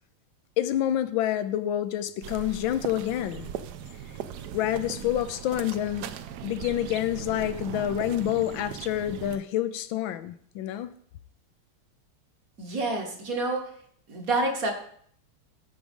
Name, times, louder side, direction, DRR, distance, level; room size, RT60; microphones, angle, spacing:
voice 1, 0.6-3.5 4.5-6.1 6.4-10.9, left 12 dB, 75° left, 13 dB, 1.3 m, -28 dB
sound 1, 2.2-9.4, right 9 dB, 70° right, 1.0 m, -38 dB
voice 2, 12.6-13.6 14.1-14.7, right 2 dB, 45° right, 3 dB, 1.7 m, -28 dB
13.5 x 4.9 x 5.3 m, 0.63 s
omnidirectional pair, 2.3 m